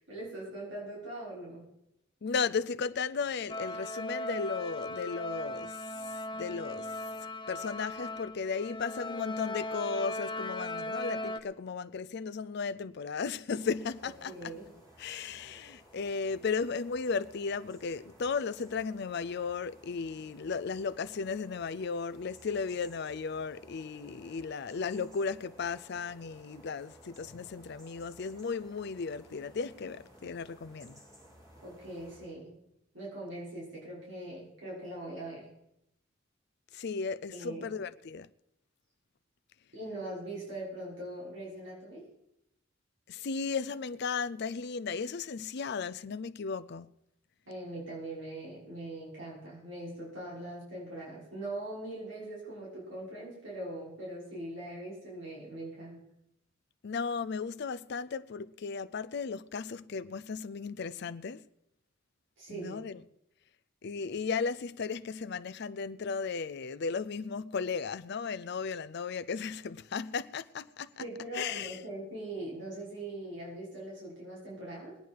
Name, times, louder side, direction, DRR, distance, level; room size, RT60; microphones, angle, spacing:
voice 1, 0.0-1.7 14.2-14.7 31.6-32.5 32.9-35.5 37.3-37.7 39.7-42.0 47.5-56.0 62.4-62.8 71.0-75.0, right 1 dB, 70° right, 6.2 m, -41 dB
voice 2, 2.2-7.0 7.5-14.3 15.0-31.0 36.7-38.3 43.1-46.9 56.8-61.4 62.5-63.0 63.8-71.0 71.3-71.8, left 5 dB, 60° left, 0.5 m, -35 dB
sound 1, 3.5-11.4, left 1 dB, 25° left, 0.8 m, -38 dB
sound 2, 13.5-32.3, equal, 20° right, 6.8 m, -57 dB
21.5 x 9.1 x 4.7 m
head